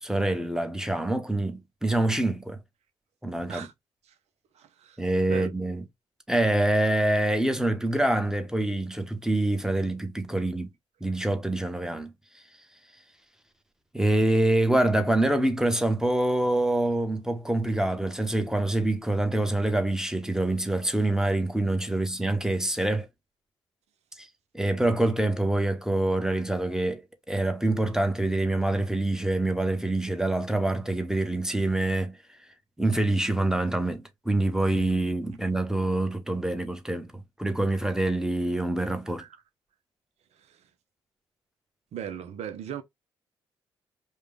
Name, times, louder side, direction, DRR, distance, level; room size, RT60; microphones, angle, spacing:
voice 1, 0.0-2.6 3.2-3.7 5.0-5.8 6.3-10.7 11.0-12.1 13.9-23.1 24.2-24.3 24.5-27.0 27.3-32.2 32.8-37.1 37.4-39.2, right 1 dB, 5° right, 1.2 m, -25 dB
voice 2, 4.5-5.0 5.3-5.5 39.0-39.3 40.4-40.6 41.9-42.8, right 9 dB, 55° right, 0.7 m, -38 dB
5.0 x 2.3 x 3.3 m
figure-of-eight pair, 40°, 13 cm